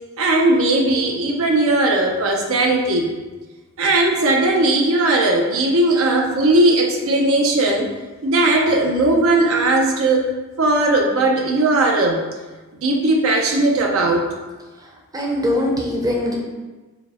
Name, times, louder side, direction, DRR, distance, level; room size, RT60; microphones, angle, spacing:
voice 1, 0.2-3.1 3.8-7.9 8.2-10.3 10.6-12.2 12.8-14.2, right 2 dB, 70° right, 1 dB, 0.5 m, -17 dB
voice 2, 15.1-16.4, left 1 dB, 15° right, -2 dB, 0.6 m, -21 dB
4.8 x 2.1 x 4.1 m, 1.2 s
head